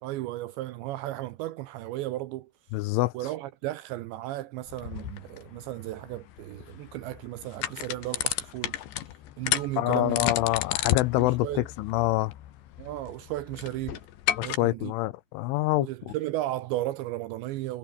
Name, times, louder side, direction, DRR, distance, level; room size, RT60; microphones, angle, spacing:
voice 1, 0.0-2.5 3.1-8.8 9.4-10.4 11.2-11.7 12.8-14.0 14.4-14.9 15.8-17.8, right 16 dB, 80° right, 2.7 m, -34 dB
voice 2, 2.7-3.1 9.8-12.3 14.4-16.1, left 19 dB, 80° left, 2.9 m, -26 dB
sound 1, 4.7-14.6, left 12 dB, 65° left, 3.6 m, -33 dB
omnidirectional pair, 5.9 m